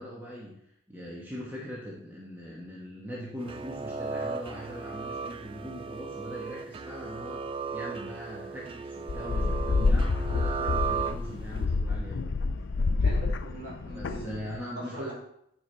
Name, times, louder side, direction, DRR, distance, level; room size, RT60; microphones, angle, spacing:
voice 1, 0.0-12.3 13.9-15.1, equal, 10° right, -5 dB, 1.1 m, -41 dB
sound 1, 3.4-11.6, right 5 dB, 25° right, 0.3 m, -36 dB
sound 2, 9.1-14.6, left 3 dB, 60° left, 0.4 m, -28 dB
voice 2, 12.8-14.4 14.8-15.1, right 1 dB, 55° right, -6 dB, 3.4 m, -42 dB
9.6 x 5.4 x 3.3 m, 0.75 s
head